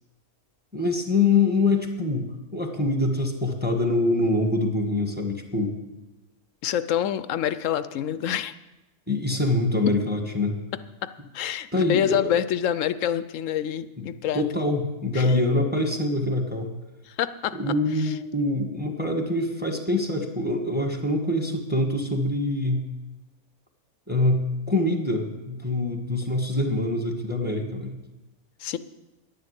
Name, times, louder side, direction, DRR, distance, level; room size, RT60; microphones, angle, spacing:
voice 1, 0.7-2.2 2.5-5.8 9.1-10.6 11.7-12.3 14.0-14.1 14.3-16.7 17.5-22.9 24.1-27.9, left 2 dB, 5° right, 3 dB, 1.3 m, -24 dB
voice 2, 6.6-8.5 11.0-14.7 15.1-15.3 17.1-17.6 18.0-18.1 28.6-28.8, left 10 dB, 65° left, 14 dB, 0.9 m, -27 dB
11.0 x 10.5 x 8.1 m, 1.0 s
omnidirectional pair, 1.6 m